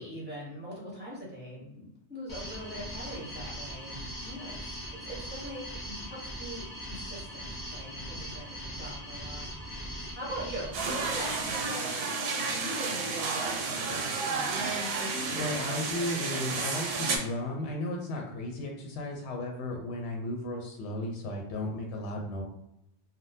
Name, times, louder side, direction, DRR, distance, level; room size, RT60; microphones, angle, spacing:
voice 1, 0.0-9.4 9.8-14.6, right 1 dB, 10° right, -5 dB, 0.8 m, -42 dB
sound 1, 2.3-11.6, equal, 20° left, 0.8 m, -40 dB
sound 2, 10.7-17.2, right 4 dB, 65° right, 0.7 m, -31 dB
voice 2, 15.3-22.4, left 1 dB, 75° left, 1 dB, 0.9 m, -35 dB
3.6 x 2.1 x 2.6 m, 0.81 s
omnidirectional pair, 1.2 m